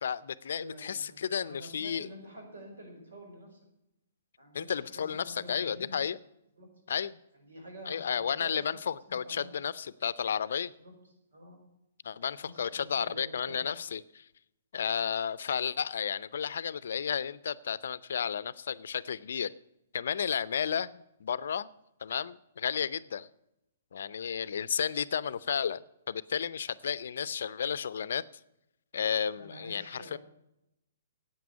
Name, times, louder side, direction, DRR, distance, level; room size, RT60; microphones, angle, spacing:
voice 1, 0.0-2.1 4.5-6.2 6.9-7.1 7.9-10.7 12.0-14.3 14.7-19.5 19.9-21.7 22.0-23.3 23.9-25.8 26.1-28.2 28.9-30.2, left 7 dB, 70° left, 18 dB, 0.5 m, -32 dB
voice 2, 0.5-1.2 1.4-3.6 4.4-6.0 6.6-6.7 7.4-8.8 9.1-9.5 10.8-10.9 11.3-11.6 12.4-13.7 29.3-30.2, equal, 80° right, 2 dB, 5.3 m, -48 dB
9.4 x 8.7 x 9.6 m, 0.84 s
hypercardioid pair, 130°, 0 cm